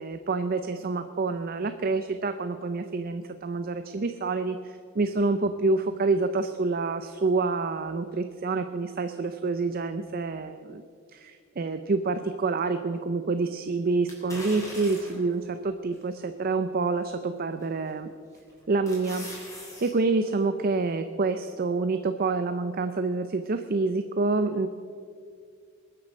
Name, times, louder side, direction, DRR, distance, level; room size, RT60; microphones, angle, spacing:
voice 1, 0.0-10.8 11.1-18.1 18.7-19.3 19.8-24.7, right 3 dB, 45° right, 9 dB, 0.5 m, -27 dB
sound 1, 14.1-15.3 15.9-16.0 17.6-17.9 18.4-19.9 20.3-20.4, left 1 dB, 15° left, 3.8 m, -41 dB
21.0 x 7.6 x 6.2 m, 2.2 s
head